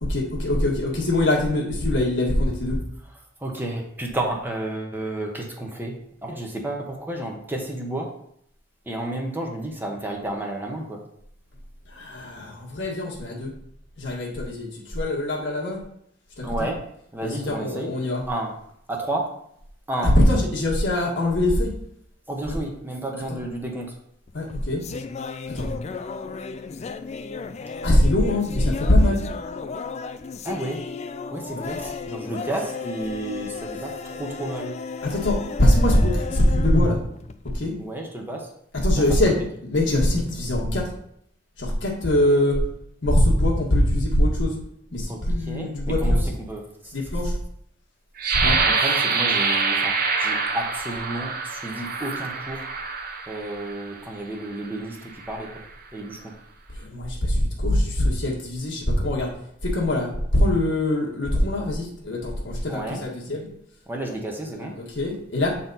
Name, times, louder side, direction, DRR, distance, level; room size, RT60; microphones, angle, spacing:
voice 1, 0.0-2.8 11.8-13.6 14.0-15.8 16.4-16.7 17.2-18.2 20.0-21.7 22.4-22.6 23.3-23.4 24.3-24.8 25.5-25.7 27.8-29.2 35.0-37.0 37.5-37.7 38.8-39.4 39.7-40.9 41.6-42.6 43.0-44.6 44.9-46.2 46.9-47.4 48.2-48.6 56.7-59.3 59.6-63.5 64.8-65.6, left 1 dB, 70° left, -2 dB, 1.7 m, -22 dB
voice 2, 3.4-8.1 8.8-11.0 16.4-16.9 17.1-17.9 18.3-18.5 18.9-19.4 19.9-20.2 22.3-24.0 30.4-30.9 31.3-34.8 37.8-38.5 39.0-39.3 45.1-46.1 46.5-46.9 48.5-52.6 53.3-55.6 55.9-56.4 62.7-63.1 63.9-64.8, right 1 dB, 10° right, 0 dB, 1.0 m, -31 dB
sound 1, 24.3-37.7, left 4 dB, 35° left, 0.4 m, -35 dB
sound 2, 48.2-53.8 54.5-54.7 55.1-55.6, right 4 dB, 50° right, 0.8 m, -25 dB
7.6 x 4.2 x 4.0 m, 0.71 s
head